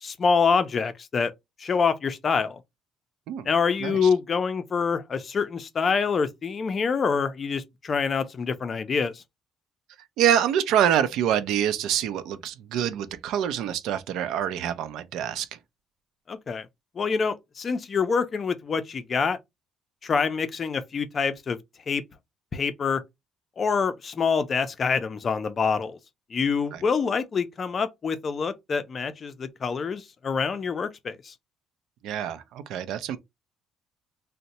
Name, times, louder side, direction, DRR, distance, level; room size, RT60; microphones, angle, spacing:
voice 1, 0.0-1.3 1.6-2.6 3.4-9.2 16.3-16.7 17.0-19.4 20.0-21.6 21.9-22.0 22.5-23.0 23.6-26.0 26.3-31.3, left 5 dB, 30° left, 0.4 m, -26 dB
voice 2, 3.8-4.1 10.2-15.6 26.7-26.8 32.0-33.2, right 10 dB, 80° right, 0.5 m, -26 dB
2.7 x 2.1 x 4.0 m
cardioid pair, 155°, 0 cm